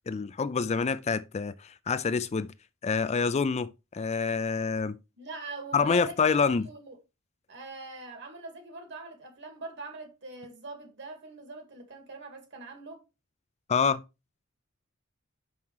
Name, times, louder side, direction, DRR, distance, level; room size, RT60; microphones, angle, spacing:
voice 1, 0.1-2.5 2.8-5.0 5.7-6.7 13.7-14.0, left 5 dB, 30° left, 0.4 m, -27 dB
voice 2, 5.2-6.3 6.6-7.0 7.5-13.0, right 3 dB, 60° right, 2.2 m, -43 dB
5.9 x 5.5 x 4.6 m
head